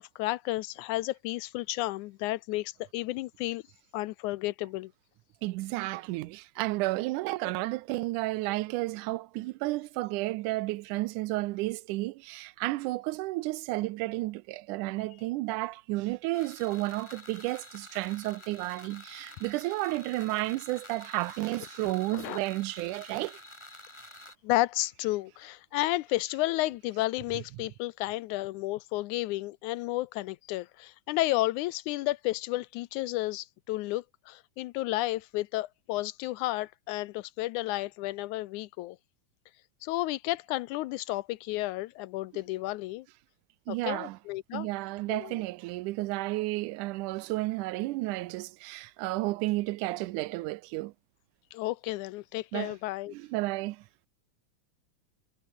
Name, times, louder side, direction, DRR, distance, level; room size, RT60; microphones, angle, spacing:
voice 1, 0.0-3.6 3.9-4.9 21.8-22.4 24.4-39.0 39.8-43.1 43.7-44.7 45.1-45.4 51.5-53.1, left 18 dB, 80° left, 2.0 m, -32 dB
voice 2, 5.4-23.4 43.7-44.2 44.5-50.9 52.5-52.8 53.1-53.9, right 19 dB, 85° right, 2.1 m, -32 dB
sound 1, 16.3-24.4, left 1 dB, 10° left, 4.4 m, -49 dB
omnidirectional pair, 3.5 m